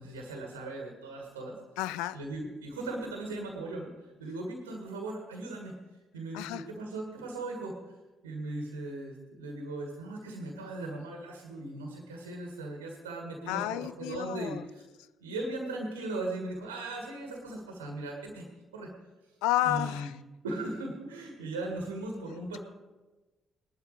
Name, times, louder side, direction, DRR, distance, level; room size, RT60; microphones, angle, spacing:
voice 1, 0.0-1.6 2.1-5.8 6.1-7.9 8.2-14.8 15.2-18.4 18.7-18.9 19.6-20.1 20.4-22.6, right 2 dB, 80° right, 1 dB, 1.7 m, -38 dB
voice 2, 1.8-2.2 6.3-6.7 13.5-14.6 19.4-20.2, left 15 dB, 70° left, 16 dB, 0.4 m, -31 dB
19.5 x 11.5 x 3.4 m, 1.1 s
figure-of-eight pair, 40°, 0 cm